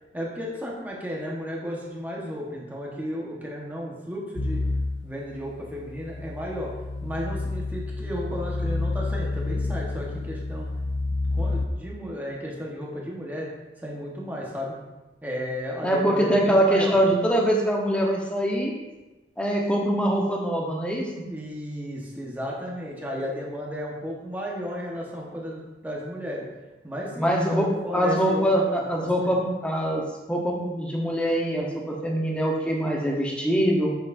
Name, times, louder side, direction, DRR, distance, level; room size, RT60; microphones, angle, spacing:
voice 1, 0.1-4.6 5.0-6.7 7.0-10.7 11.3-13.5 13.8-14.8 15.2-17.0 21.3-26.5 26.8-29.4, equal, 10° right, -3 dB, 1.3 m, -34 dB
sound 1, 4.4-11.7, left 2 dB, 85° left, 0.6 m, -29 dB
voice 2, 15.8-18.7 19.4-21.2 27.2-34.0, equal, 5° left, -2 dB, 1.0 m, -23 dB
7.9 x 6.8 x 2.7 m, 1.1 s
head